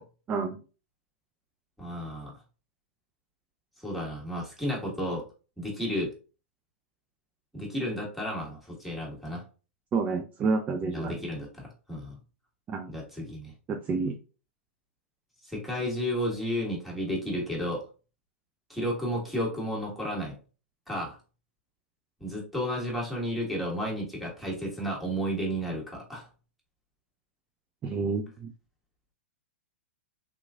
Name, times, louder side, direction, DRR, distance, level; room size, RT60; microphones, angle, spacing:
voice 1, 0.3-0.6 9.9-11.2 12.7-12.9 13.7-14.2 27.8-28.5, right 4 dB, 25° right, 5 dB, 0.4 m, -29 dB
voice 2, 1.8-2.3 3.8-5.3 5.6-6.1 7.5-9.4 10.9-12.2 12.9-13.5 15.4-17.8 18.7-20.4 20.9-21.2 22.2-26.3, equal, ahead, -3 dB, 1.5 m, -32 dB
3.5 x 3.0 x 2.4 m, 0.35 s
hypercardioid pair, 120°, 7 cm